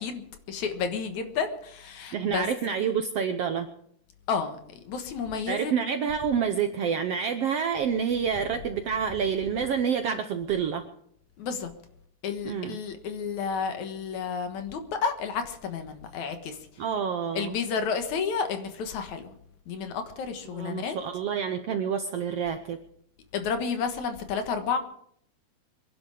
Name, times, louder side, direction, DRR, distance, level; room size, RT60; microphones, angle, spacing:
voice 1, 0.0-2.5 4.3-5.8 11.4-11.7 12.2-16.8 17.3-19.3 19.7-21.0 23.3-24.8, left 6 dB, 65° left, 2.7 m, -31 dB
voice 2, 2.1-3.7 5.5-10.8 12.4-12.8 16.8-17.6 20.5-22.8, right 7 dB, 70° right, 1.5 m, -28 dB
24.5 x 11.0 x 4.9 m
omnidirectional pair, 3.8 m